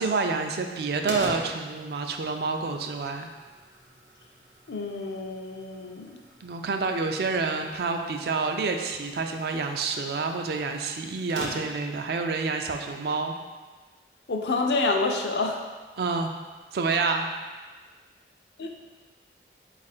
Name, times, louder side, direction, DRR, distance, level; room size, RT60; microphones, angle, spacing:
voice 1, 0.0-3.3 6.4-13.3 16.0-16.3 16.7-17.3, right 4 dB, 60° right, 4 dB, 0.3 m, -28 dB
sound 1, 1.1-12.0, right 1 dB, 85° right, 0.8 m, -43 dB
voice 2, 4.7-6.2 14.3-15.6 18.6-18.7, left 3 dB, 70° left, 2 dB, 0.5 m, -28 dB
4.2 x 2.5 x 4.1 m, 1.4 s
head